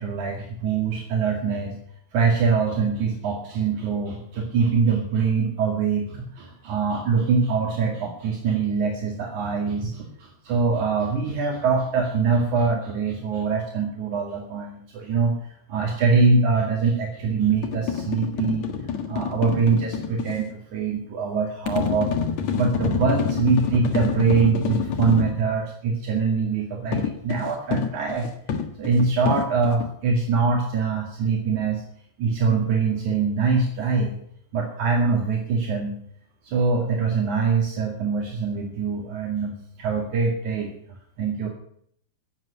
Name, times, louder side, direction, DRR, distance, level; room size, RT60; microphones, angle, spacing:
voice 1, 0.0-1.8 2.1-15.4 15.7-18.8 19.1-22.1 22.5-28.3 28.8-31.8 32.2-34.2 34.5-36.0 36.4-41.5, right 5 dB, 75° right, 0 dB, 3.6 m, -23 dB
sound 1, 17.5-20.4 21.7-25.4 26.9-29.9, left 6 dB, 65° left, 2.9 m, -27 dB
17.0 x 7.7 x 10.0 m, 0.67 s
omnidirectional pair, 3.4 m